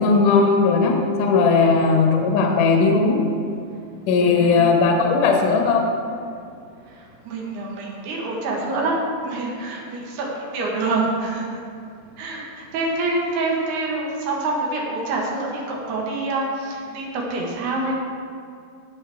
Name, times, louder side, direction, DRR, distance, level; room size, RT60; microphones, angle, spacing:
voice 1, 0.0-3.2 4.1-5.8, left 4 dB, 70° left, 1 dB, 2.1 m, -17 dB
voice 2, 4.2-4.7 7.3-9.0 9.2-11.6 12.2-18.0, right 2 dB, 70° right, -2 dB, 3.2 m, -26 dB
16.0 x 6.4 x 3.5 m, 2.4 s
omnidirectional pair, 4.9 m